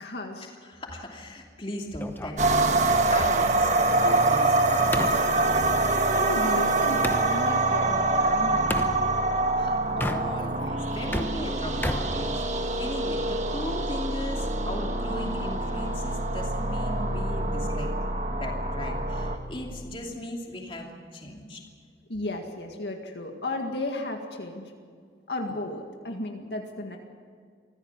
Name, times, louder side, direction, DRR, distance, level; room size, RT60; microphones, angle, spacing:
voice 1, 0.0-0.5 5.9-9.2 22.1-24.7 25.3-27.0, left 2 dB, 75° left, 3 dB, 2.0 m, -34 dB
voice 2, 0.7-3.7 4.0-5.4 9.5-12.4 12.8-17.9 18.3-21.6, left 1 dB, 30° left, 0 dB, 2.8 m, -37 dB
sound 1, 2.0-7.3 8.7-9.0 9.9-10.6 10.9-12.9, left 1 dB, 10° left, 0.9 m, -35 dB
sound 2, 2.4-19.4, right 2 dB, 40° right, 1.3 m, -25 dB
24.5 x 16.0 x 7.5 m, 2.1 s
head